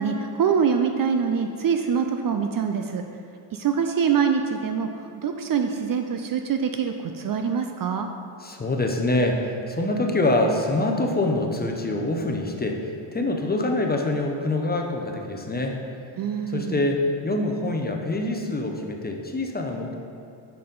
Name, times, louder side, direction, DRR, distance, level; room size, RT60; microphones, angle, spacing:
voice 1, 0.0-3.0 3.5-4.9 5.2-8.1 16.2-16.8, right 6 dB, 45° right, 5 dB, 0.5 m, -24 dB
voice 2, 8.4-15.8 16.5-19.9, left 2 dB, 20° left, 2 dB, 0.7 m, -25 dB
6.4 x 5.5 x 3.9 m, 2.6 s
cardioid pair, 80°, 50 cm